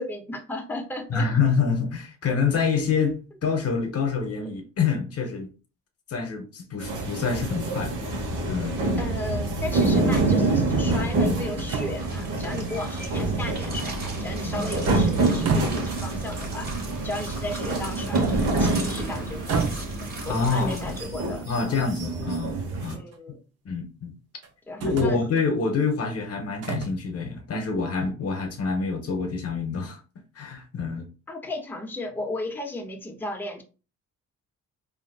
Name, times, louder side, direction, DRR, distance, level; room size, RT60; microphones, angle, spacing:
voice 1, 0.0-1.3 9.0-16.7 17.0-21.7 22.9-23.4 24.7-25.4 31.3-33.6, left 2 dB, 5° left, 0.7 m, -35 dB
voice 2, 1.1-5.5 6.1-8.8 20.3-21.0 21.5-23.0 23.6-24.1 24.8-30.0 30.4-31.1, left 5 dB, 50° left, 0.8 m, -26 dB
sound 1, 6.8-22.9, right 2 dB, 90° right, 1.0 m, -27 dB
sound 2, 11.6-12.1 12.7-12.8 13.2-14.2 15.2-16.0 17.7-18.1 19.5-20.2 21.7-21.8 22.5-23.2 24.4-24.5 24.8-25.4 26.6-27.0, right 4 dB, 55° right, 0.7 m, -30 dB
sound 3, 11.9-21.1, right 2 dB, 30° right, 1.2 m, -38 dB
3.7 x 2.5 x 2.3 m
cardioid pair, 90°, 30 cm